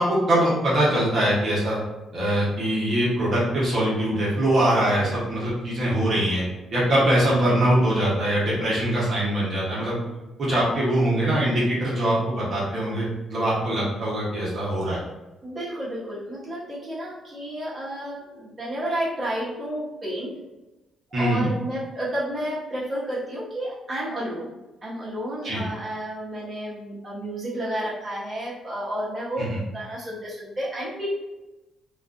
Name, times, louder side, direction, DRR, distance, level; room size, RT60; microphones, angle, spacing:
voice 1, 0.0-1.8 2.1-6.4 6.7-9.9 10.4-13.0 13.3-15.0 21.1-21.5 25.4-25.6 29.4-29.6, right 1 dB, 50° right, -7 dB, 0.9 m, -22 dB
voice 2, 15.4-20.3 21.2-24.5 24.8-31.1, right 1 dB, 25° right, -8 dB, 1.0 m, -31 dB
2.4 x 2.3 x 2.5 m, 1.1 s
cardioid pair, 90°, 0 cm